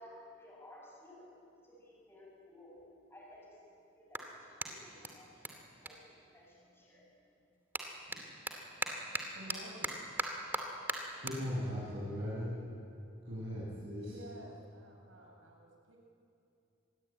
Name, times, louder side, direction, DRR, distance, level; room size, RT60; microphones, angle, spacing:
voice 1, 0.0-7.5, left 1 dB, 10° left, -4 dB, 7.2 m, -57 dB
Clapping, 2.0-2.1 2.8-6.8 7.1-13.8, right 2 dB, 10° right, 2.5 m, -42 dB
voice 2, 8.1-10.0 10.9-11.2 14.0-16.0, right 1 dB, 80° right, 0 dB, 5.9 m, -54 dB
voice 3, 11.2-12.6 13.3-14.2, equal, 55° right, -8 dB, 7.2 m, -38 dB
26.0 x 21.0 x 8.9 m, 2.6 s
head